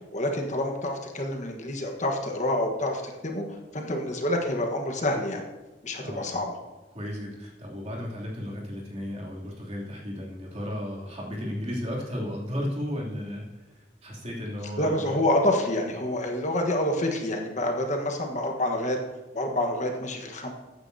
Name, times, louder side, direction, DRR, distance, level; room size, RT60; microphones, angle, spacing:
voice 1, 0.1-3.4 3.7-5.4 5.8-6.5 14.8-19.0 19.3-20.5, left 1 dB, 45° left, 3 dB, 1.3 m, -27 dB
voice 2, 5.9-6.3 6.9-15.2, equal, 40° right, -3 dB, 2.9 m, -34 dB
14.5 x 9.5 x 2.8 m, 1.1 s
head